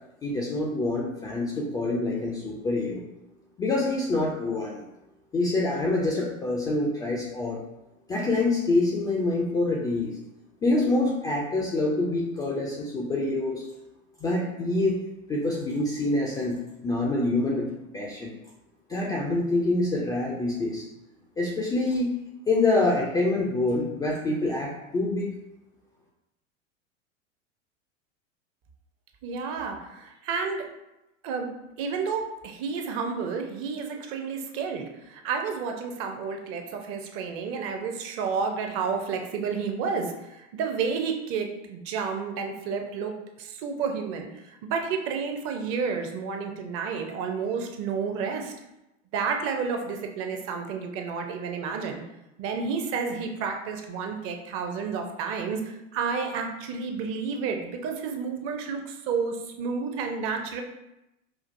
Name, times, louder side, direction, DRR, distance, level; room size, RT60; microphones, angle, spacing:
voice 1, 0.2-3.0 3.6-4.8 5.3-7.6 8.1-10.1 10.6-13.6 14.2-15.0 15.3-18.3 18.9-20.8 21.4-22.1 22.5-25.3, left 2 dB, 10° left, -3 dB, 0.3 m, -26 dB
voice 2, 29.2-30.7 31.2-48.5 49.1-52.0 52.4-60.6, right 5 dB, 35° right, 4 dB, 0.6 m, -31 dB
5.1 x 2.4 x 2.5 m, 0.92 s
figure-of-eight pair, 85°, 38 cm